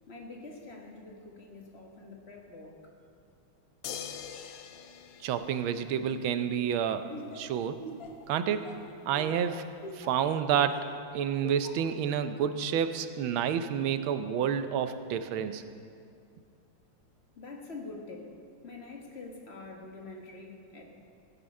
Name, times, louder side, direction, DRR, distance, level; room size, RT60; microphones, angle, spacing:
voice 1, 0.1-2.9 17.3-20.8, left 3 dB, 35° left, 1 dB, 1.6 m, -45 dB
sound 1, 3.8-6.3 8.0-8.1, left 8 dB, 85° left, 1.6 m, -43 dB
voice 2, 5.2-7.8 8.3-8.7 9.0-9.6 9.9-10.9 11.1-15.6, right 8 dB, 80° right, 10 dB, 1.4 m, -29 dB
Laughter, 7.1-11.0 11.4-11.9, left 1 dB, 50° left, 1.4 m, -42 dB
16.0 x 9.9 x 5.3 m, 2.4 s
omnidirectional pair, 2.3 m